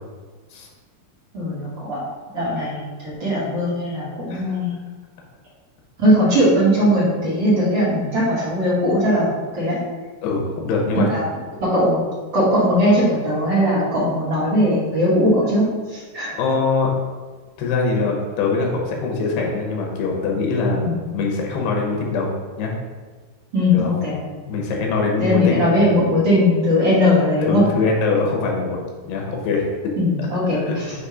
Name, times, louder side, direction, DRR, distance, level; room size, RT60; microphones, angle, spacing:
voice 1, 1.3-2.0 2.3-4.8 6.0-9.8 10.9-11.2 11.6-12.0 12.3-16.3 20.8-21.0 23.5-24.2 25.2-27.6 30.0-30.9, left 1 dB, 40° right, -8 dB, 1.8 m, -19 dB
voice 2, 10.2-11.1 16.3-16.9 17.6-22.7 23.7-23.9 24.5-26.0 27.5-28.8 29.0-29.9 30.5-30.7, left 4 dB, 90° left, 0 dB, 3.1 m, -23 dB
7.4 x 2.7 x 4.9 m, 1.4 s
omnidirectional pair, 4.5 m